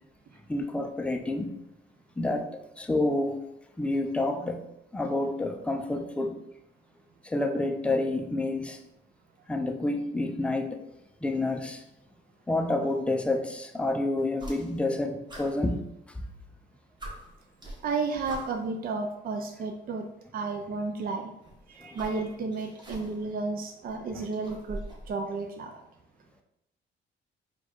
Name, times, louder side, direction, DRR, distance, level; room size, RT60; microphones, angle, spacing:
voice 1, 0.5-1.5 2.2-3.4 3.8-4.6 4.9-6.4 7.2-8.8 9.5-10.8 11.2-11.8 12.5-15.8 21.8-22.0 24.1-24.3, left 2 dB, 5° left, 5 dB, 0.4 m, -29 dB
sound 1, 14.3-15.0 15.3-16.4 16.7-16.8 17.0-18.8 19.8-19.9 21.3-23.3 23.7-25.1, right 1 dB, 20° right, 1.5 m, -43 dB
voice 2, 17.8-20.1 20.3-21.3 21.7-24.8 25.1-25.8, right 4 dB, 45° right, 4 dB, 0.5 m, -32 dB
4.3 x 2.3 x 4.3 m, 0.85 s
cardioid pair, 90°, 20 cm